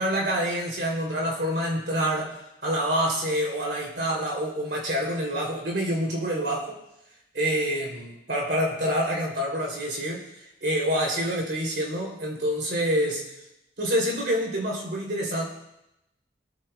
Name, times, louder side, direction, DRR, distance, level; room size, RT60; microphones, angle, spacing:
voice 1, 0.0-6.8 7.3-10.2 10.6-13.3 13.8-15.4, equal, 65° right, -1 dB, 3.0 m, -27 dB
24.5 x 8.9 x 2.3 m, 0.87 s
head